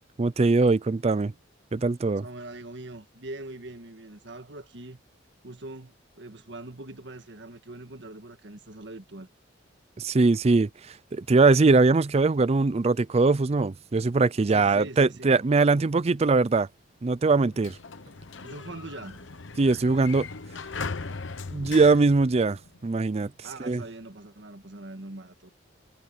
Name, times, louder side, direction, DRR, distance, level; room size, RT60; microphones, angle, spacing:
voice 1, 0.2-1.3 1.7-2.2 10.0-16.7 17.0-17.8 19.6-20.3 21.5-23.3 23.6-23.8, right 3 dB, 35° right, 0.4 m, -22 dB
voice 2, 2.2-5.0 5.4-9.3 14.5-15.4 18.4-19.3 23.4-25.5, right 2 dB, 65° right, 1.8 m, -42 dB
Sliding door, 17.4-23.0, left 4 dB, 75° left, 0.9 m, -39 dB
head